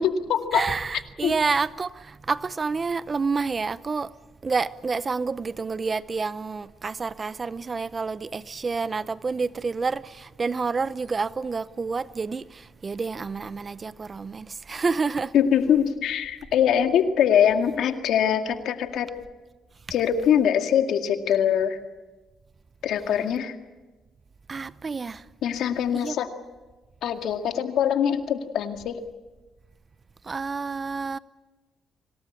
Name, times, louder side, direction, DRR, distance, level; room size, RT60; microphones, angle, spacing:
voice 1, 0.0-0.6 1.2-1.3 15.3-19.1 19.9-21.8 22.8-23.6 25.4-26.3 27.0-29.0, left 9 dB, 80° left, 2.1 m, -23 dB
voice 2, 0.5-4.1 4.4-15.3 24.5-25.3 25.9-26.2 30.2-31.2, right 4 dB, 35° right, 0.7 m, -29 dB
25.5 x 18.0 x 8.6 m
cardioid pair, 90°, 0 cm